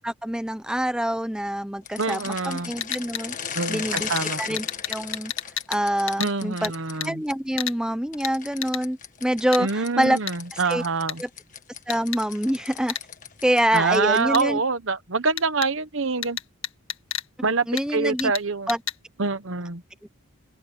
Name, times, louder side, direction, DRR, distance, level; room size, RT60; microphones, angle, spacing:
voice 1, 0.0-3.3 3.7-5.3 5.7-6.7 7.0-10.2 10.5-10.8 11.2-11.3 11.9-13.0 13.4-14.6 17.7-18.3 18.7-18.8, equal, 5° right, 0.7 m, -26 dB
sound 1, 1.8-7.3 8.1-14.6, left 7 dB, 35° left, 1.7 m, -37 dB
voice 2, 2.0-2.7 3.5-4.6 6.2-7.2 9.6-11.2 13.7-16.4 17.4-17.7 17.9-18.7 19.2-19.8, right 4 dB, 60° right, 1.1 m, -25 dB
sound 2, 2.8-3.2 4.0-4.2 4.6-5.8 6.1-6.3 6.6-6.7 7.0-7.1 7.6-7.8 8.2-8.3 8.6-8.8 9.5-9.6 10.3-10.4 11.1-11.2 11.9-12.2 12.9-13.0 14.3-14.4 15.4-15.7 16.2-17.3 17.8-17.9 18.2-18.4 18.7-19.0, left 11 dB, 65° left, 2.0 m, -31 dB
open air
head